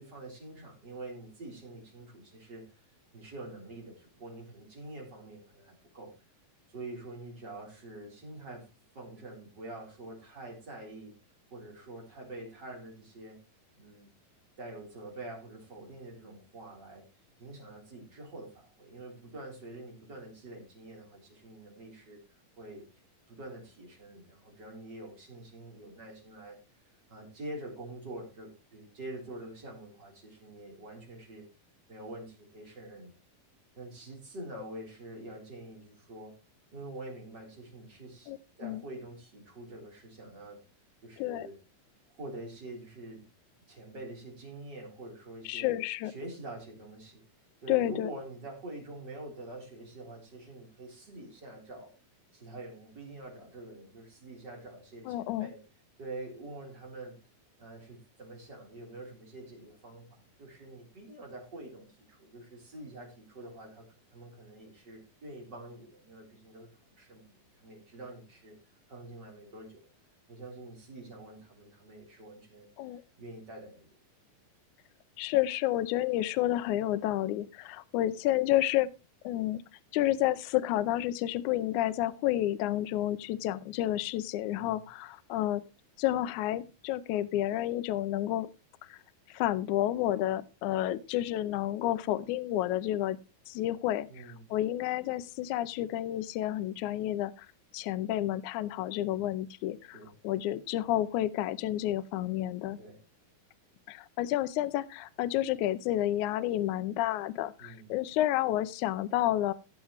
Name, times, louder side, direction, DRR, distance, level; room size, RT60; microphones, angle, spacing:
voice 1, 0.0-2.6 3.1-6.1 6.7-11.1 11.5-13.4 13.8-14.1 14.6-17.1 17.4-22.2 22.6-22.9 23.3-26.6 27.1-31.5 31.9-33.1 33.8-36.4 36.7-40.6 41.0-41.6 42.1-43.3 43.7-45.7 46.0-47.2 47.6-51.9 52.3-55.6 56.0-57.2 57.6-66.7 67.0-68.6 68.9-69.9 70.3-72.7 73.2-73.9 84.5-84.8 94.1-94.5 99.9-100.1 102.8-103.0 107.6-107.9, right 2 dB, 30° right, 0 dB, 3.9 m, -46 dB
voice 2, 38.3-38.8 41.2-41.5 45.5-46.1 47.7-48.1 55.1-55.5 72.8-73.0 75.2-78.9 79.2-79.6 79.9-85.6 86.0-88.5 88.8-89.0 89.3-93.2 93.5-97.5 97.7-100.0 100.2-102.8 103.9-109.5, left 14 dB, 85° left, 15 dB, 1.7 m, -30 dB
17.5 x 7.3 x 3.1 m, 0.27 s
omnidirectional pair, 4.2 m